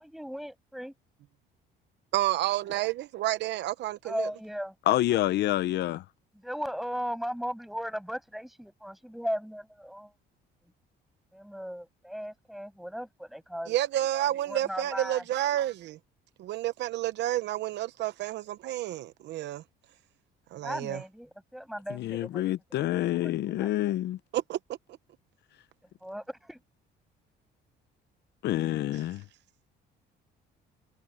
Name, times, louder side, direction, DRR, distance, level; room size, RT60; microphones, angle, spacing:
voice 1, 0.0-0.9 4.0-4.7 6.4-10.1 11.3-13.8 14.5-15.2 20.6-22.5 22.8-23.7 26.0-26.6, equal, ahead, 7.1 m, -37 dB
voice 2, 2.1-4.3 13.7-16.0 16.4-19.6 20.5-21.0 24.3-24.6, right 14 dB, 70° right, 0.9 m, -30 dB
voice 3, 4.9-6.0 21.9-24.2 28.4-29.2, left 14 dB, 70° left, 0.7 m, -27 dB
cardioid pair, 135°, 19 cm